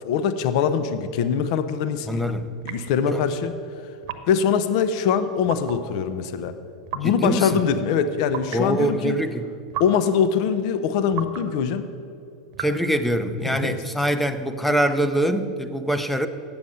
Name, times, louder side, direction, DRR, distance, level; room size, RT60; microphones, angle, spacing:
voice 1, 0.0-2.2 2.6-3.5 4.3-6.6 6.9-9.2 9.8-11.8 13.4-13.8, left 7 dB, 60° left, 11 dB, 0.7 m, -23 dB
voice 2, 2.1-2.5 3.1-3.2 7.0-7.6 8.5-9.5 12.6-16.3, right 1 dB, 5° left, 9 dB, 0.6 m, -24 dB
sound 1, 2.6-3.0 4.0-4.4 5.5-5.9 6.9-7.2 8.3-8.7 9.7-10.1 11.1-11.5 12.5-12.8, right 9 dB, 55° right, 0.9 m, -34 dB
8.6 x 7.0 x 7.8 m, 2.6 s
hypercardioid pair, 110°, 4 cm